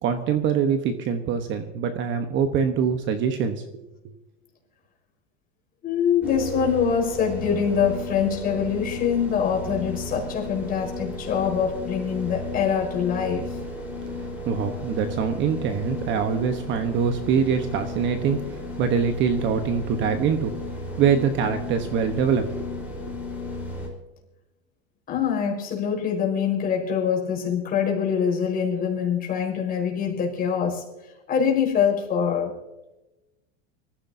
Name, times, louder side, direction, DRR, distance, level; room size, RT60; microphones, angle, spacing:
voice 1, 0.0-3.6 14.4-20.5 21.0-22.5, right 7 dB, 35° right, 8 dB, 1.1 m, -24 dB
voice 2, 5.8-13.4 25.1-30.8 31.3-32.5, left 7 dB, 25° left, -1 dB, 4.9 m, -24 dB
sound 1, 6.2-23.9, left 2 dB, 5° right, 4.1 m, -34 dB
25.0 x 15.0 x 2.7 m, 1.0 s
supercardioid pair, 145°, 33 cm